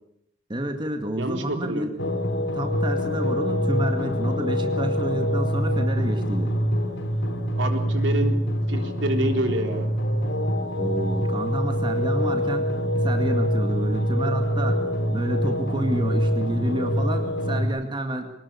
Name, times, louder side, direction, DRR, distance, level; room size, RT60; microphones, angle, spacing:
voice 1, 0.5-1.9 2.5-6.5 10.8-12.7 13.0-14.8 15.1-18.3, right 1 dB, 25° right, 5 dB, 2.0 m, -29 dB
voice 2, 1.2-1.9 7.6-9.9, right 1 dB, 70° right, 5 dB, 3.8 m, -27 dB
sound 1, 2.0-17.6, equal, 80° left, 4.8 m, -25 dB
24.5 x 20.0 x 8.5 m, 0.78 s
head